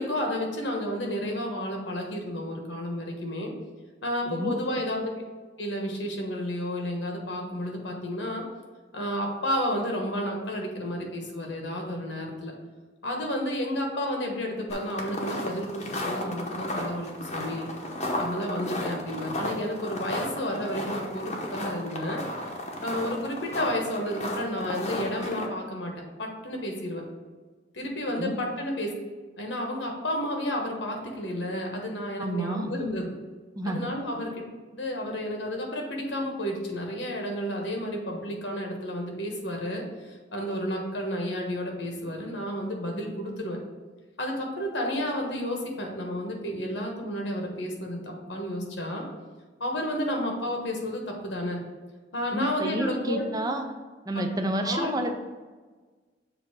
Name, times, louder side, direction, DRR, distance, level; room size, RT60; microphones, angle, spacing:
voice 1, 0.0-3.5 4.0-5.1 5.6-8.4 8.9-12.6 13.0-17.7 18.2-22.2 22.8-25.9 26.2-27.0 27.7-28.9 29.4-33.1 33.7-34.4 34.7-43.6 44.2-49.1 49.6-51.6 52.1-53.2 54.6-54.9, equal, 75° left, 1 dB, 1.3 m, -31 dB
voice 2, 4.3-4.6 28.2-28.3 32.2-32.7 33.6-33.8 52.3-53.6 54.1-55.2, right 1 dB, 20° right, 4 dB, 0.6 m, -29 dB
sound 1, 14.7-25.5, left 1 dB, 40° left, 0.9 m, -34 dB
7.0 x 2.8 x 5.8 m, 1.4 s
head